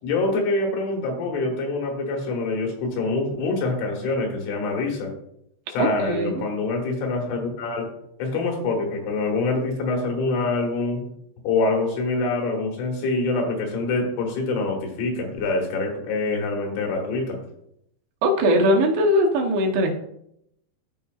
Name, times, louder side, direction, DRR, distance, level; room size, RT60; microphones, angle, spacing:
voice 1, 0.0-5.1 5.7-7.9 8.2-11.0 11.4-17.4, left 3 dB, 90° left, 1 dB, 4.0 m, -25 dB
voice 2, 5.8-6.4 18.2-19.9, equal, 75° right, 0 dB, 2.8 m, -20 dB
14.0 x 4.7 x 2.3 m, 0.75 s
omnidirectional pair, 5.3 m